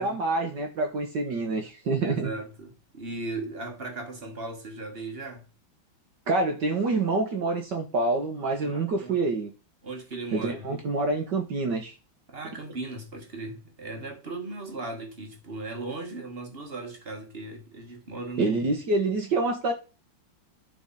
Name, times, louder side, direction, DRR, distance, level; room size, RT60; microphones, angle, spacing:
voice 1, 0.0-2.3 6.3-9.5 10.3-11.9 18.4-19.7, right 3 dB, 60° right, 1.9 m, -27 dB
voice 2, 2.0-5.5 8.6-9.2 9.8-10.7 12.3-18.7, right 2 dB, 30° right, 1.8 m, -37 dB
10.5 x 5.4 x 4.2 m
omnidirectional pair, 2.2 m